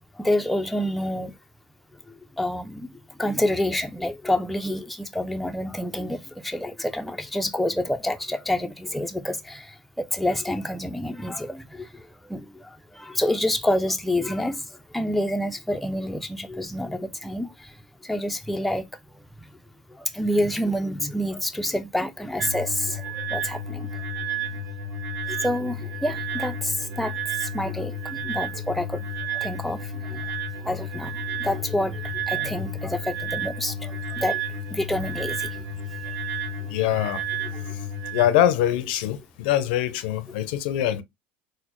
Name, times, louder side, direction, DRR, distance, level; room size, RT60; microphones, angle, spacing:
voice 1, 0.1-1.4 2.1-18.9 19.1-19.5 19.9-24.1 24.4-24.5 25.3-35.7 36.0-36.2 36.6-36.8 37.4-37.7, left 1 dB, ahead, 0.4 m, -28 dB
sound 1, 22.4-38.3, right 2 dB, 45° right, 1.0 m, -31 dB
voice 2, 36.7-37.2 38.1-41.0, left 12 dB, 80° left, 0.5 m, -23 dB
4.1 x 2.0 x 2.9 m
supercardioid pair, 110°, 5 cm